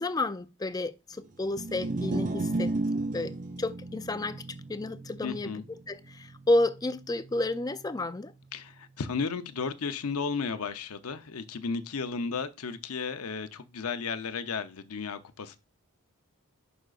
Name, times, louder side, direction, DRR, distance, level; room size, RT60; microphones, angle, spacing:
voice 1, 0.0-4.4 4.7-8.3, left 2 dB, 15° left, 0.4 m, -31 dB
sound 1, 1.4-7.8, right 2 dB, 35° right, 0.5 m, -34 dB
voice 2, 5.2-5.6 8.5-15.6, left 5 dB, 75° left, 0.7 m, -34 dB
11.0 x 5.1 x 2.4 m
head